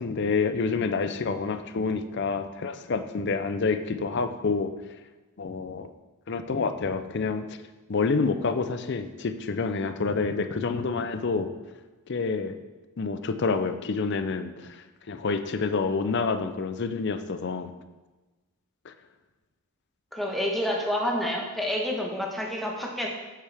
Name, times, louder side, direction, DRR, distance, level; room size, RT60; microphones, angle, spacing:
voice 1, 0.0-4.7 5.4-5.9 6.3-7.6 7.9-11.5 12.1-12.6 13.0-14.8 15.1-17.7 18.9-19.0, left 4 dB, 50° left, 10 dB, 0.5 m, -28 dB
voice 2, 20.1-23.1, equal, ahead, -2 dB, 1.2 m, -28 dB
8.6 x 8.3 x 3.4 m, 1.2 s
head